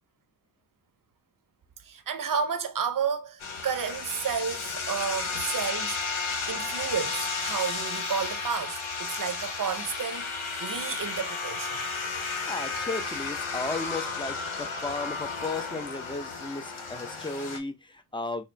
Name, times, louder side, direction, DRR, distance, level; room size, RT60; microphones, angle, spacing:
voice 1, 1.8-6.0 6.5-10.3 10.6-11.8, right 6 dB, 45° right, 0.7 m, -31 dB
sound 1, 3.4-17.6, left 4 dB, 85° left, 1.2 m, -33 dB
voice 2, 12.5-18.4, left 3 dB, 10° left, 0.6 m, -35 dB
4.3 x 2.4 x 3.3 m
cardioid pair, 80°, 47 cm